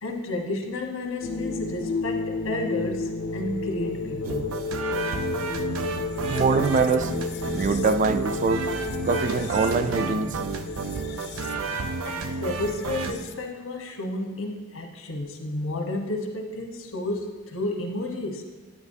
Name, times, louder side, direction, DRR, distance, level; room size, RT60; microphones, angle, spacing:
voice 1, 0.0-4.6 12.0-18.4, left 2 dB, 85° left, 2 dB, 1.2 m, -31 dB
sound 1, 1.2-13.5, left 3 dB, 55° left, 0.5 m, -32 dB
sound 2, 4.2-13.1, right 4 dB, 90° right, 0.5 m, -31 dB
voice 2, 6.3-7.1 7.5-8.6 9.0-10.4, right 4 dB, 35° right, 10 dB, 0.3 m, -23 dB
10.0 x 9.2 x 2.7 m, 1.3 s
head